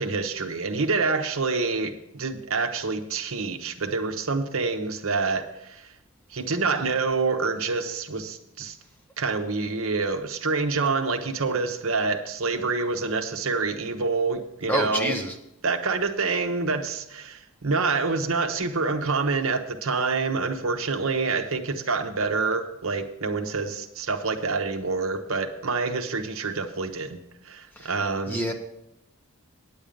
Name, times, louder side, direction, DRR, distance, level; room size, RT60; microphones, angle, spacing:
voice 1, 0.0-5.9 6.3-8.8 9.2-15.2 15.6-28.4, right 4 dB, 70° right, 6 dB, 0.9 m, -27 dB
voice 2, 14.7-15.3 27.8-27.9 28.3-28.5, equal, 10° left, 2 dB, 0.8 m, -27 dB
9.4 x 8.9 x 5.2 m, 0.87 s
head